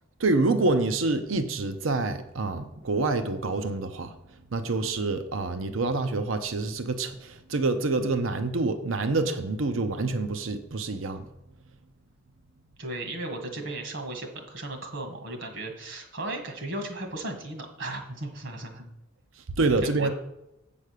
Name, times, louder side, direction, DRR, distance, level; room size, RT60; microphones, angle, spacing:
voice 1, 0.2-4.2 4.5-11.3 19.6-20.1, right 3 dB, 85° right, 10 dB, 0.7 m, -27 dB
voice 2, 12.8-18.8 19.8-20.1, right 2 dB, 65° right, 5 dB, 1.8 m, -36 dB
8.3 x 5.2 x 6.6 m, 0.88 s
head